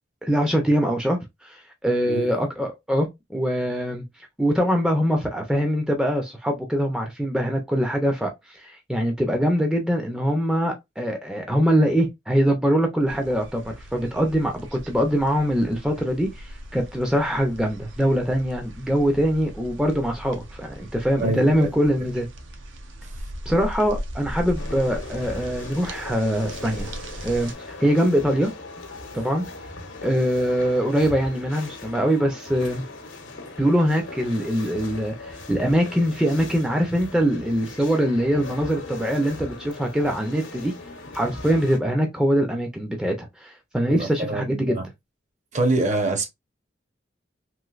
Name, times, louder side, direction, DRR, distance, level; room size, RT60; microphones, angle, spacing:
voice 1, 0.2-4.0 4.4-22.3 23.5-26.9 27.2-27.5 27.8-28.5 29.1-29.4 30.0-32.8 33.6-40.7 41.1-44.8, equal, 5° right, 0.5 m, -23 dB
sound 1, 13.1-27.5, equal, 75° right, 0.6 m, -38 dB
voice 2, 21.2-21.7 43.9-44.9 45.5-46.3, right 2 dB, 40° right, 0.7 m, -25 dB
sound 2, 24.6-41.8, left 2 dB, 85° left, 0.9 m, -39 dB
3.1 x 2.9 x 2.3 m
head